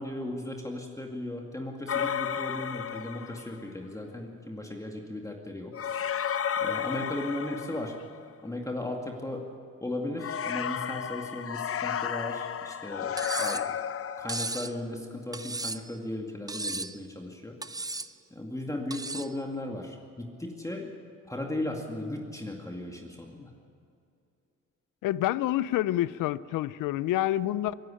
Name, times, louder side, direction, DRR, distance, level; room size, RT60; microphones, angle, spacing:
voice 1, 0.0-5.7 6.6-7.9 8.4-9.5 9.8-13.6 14.2-17.6 18.3-21.0 21.3-23.5, left 1 dB, 10° left, 1 dB, 2.2 m, -36 dB
sound 1, 1.9-3.6 5.7-8.3 10.2-14.6, left 8 dB, 45° left, 0.8 m, -32 dB
Cutlery silverware, 13.2-13.7 14.3-14.7 15.3-15.9 16.5-17.0 17.6-18.1 18.9-19.3, right 3 dB, 10° right, 0.7 m, -35 dB
voice 2, 25.0-27.7, left 14 dB, 80° left, 19 dB, 0.6 m, -28 dB
23.0 x 11.5 x 10.0 m, 2.5 s
supercardioid pair, 75°, 31 cm